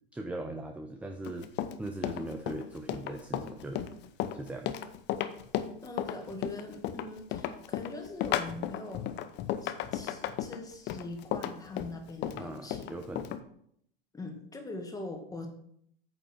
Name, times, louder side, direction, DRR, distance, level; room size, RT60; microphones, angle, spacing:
voice 1, 0.1-1.5 1.8-3.9 4.3-4.8 12.4-13.4, right 2 dB, 5° right, 5 dB, 0.7 m, -39 dB
Run, 1.2-13.4, left 11 dB, 35° left, 0.7 m, -34 dB
voice 2, 5.8-9.1 9.6-12.9 14.1-15.5, left 2 dB, 10° left, 3 dB, 1.9 m, -42 dB
8.7 x 6.9 x 4.5 m, 0.69 s
hypercardioid pair, 105°, 29 cm